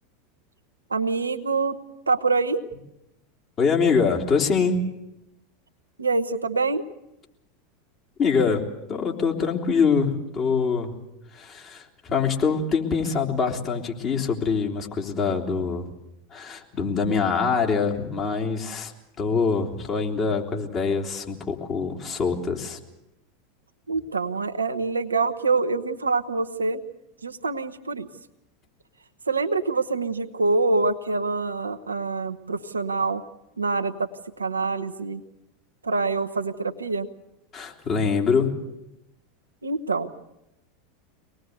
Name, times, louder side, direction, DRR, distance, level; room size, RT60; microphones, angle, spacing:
voice 1, 0.9-1.8 2.1-2.6 6.0-6.8 23.9-26.8 27.2-28.1 29.3-33.2 33.6-34.1 34.4-35.2 35.8-37.1 39.6-40.1, right 3 dB, 85° right, 7 dB, 0.9 m, -25 dB
voice 2, 3.6-4.8 8.2-8.6 8.9-10.9 11.3-15.8 16.3-18.9 19.2-22.8 37.5-38.5, left 5 dB, 35° left, 1 dB, 3.2 m, -24 dB
24.0 x 19.5 x 8.0 m, 0.86 s
figure-of-eight pair, 85°, 0 cm